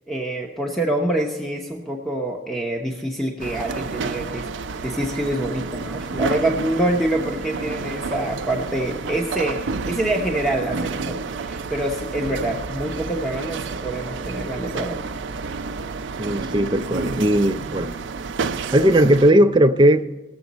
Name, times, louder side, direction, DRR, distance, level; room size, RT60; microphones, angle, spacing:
voice 1, 0.1-4.5 4.8-15.1, right 1 dB, ahead, 0.8 m, -26 dB
sound 1, 3.4-19.3, right 4 dB, 75° right, 0.5 m, -30 dB
voice 2, 16.2-17.9 18.7-20.1, right 1 dB, 25° right, 0.5 m, -17 dB
19.0 x 7.0 x 4.1 m
head